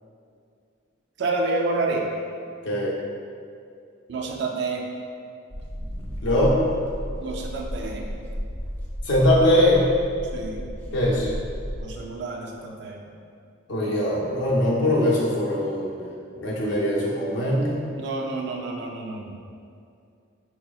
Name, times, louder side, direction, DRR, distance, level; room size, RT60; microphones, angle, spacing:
voice 1, 1.2-2.1 4.1-4.8 7.2-8.1 10.3-10.6 11.8-13.0 18.0-19.4, right 3 dB, 55° right, 1 dB, 0.4 m, -29 dB
sound 1, 5.5-11.9, equal, 10° left, 0.4 m, -33 dB
voice 2, 6.2-6.6 9.0-9.9 10.9-11.3 13.7-15.9 16.4-17.8, left 1 dB, 60° left, -5 dB, 0.6 m, -21 dB
4.5 x 2.9 x 2.3 m, 2.4 s
head